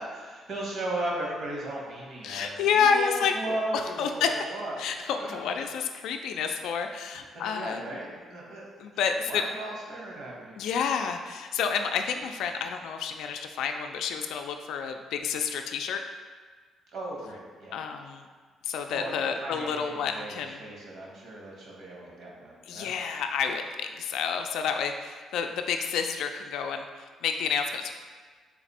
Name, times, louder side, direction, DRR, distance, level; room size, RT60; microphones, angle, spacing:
voice 1, 0.0-4.7 5.2-5.3 7.3-8.6 9.3-10.5 16.9-17.8 18.9-22.9, right 1 dB, 60° right, -3 dB, 1.0 m, -36 dB
voice 2, 2.2-4.3 4.8-8.0 8.8-9.4 10.6-16.0 17.7-18.3 18.6-20.6 22.7-27.9, left 6 dB, 85° left, 5 dB, 0.3 m, -29 dB
4.0 x 2.5 x 4.1 m, 1.5 s
cardioid pair, 145°, 0 cm